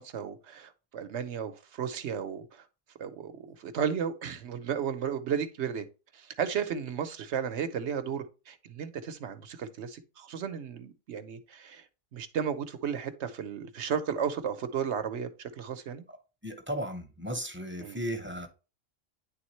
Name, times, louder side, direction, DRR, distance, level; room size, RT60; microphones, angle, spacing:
voice 1, 0.0-2.6 3.0-5.8 6.1-11.8 12.1-16.0 17.8-18.0, right 7 dB, 65° right, 1.0 m, -34 dB
voice 2, 16.4-18.5, equal, 10° right, 0.7 m, -35 dB
9.7 x 3.5 x 3.1 m
omnidirectional pair, 1.4 m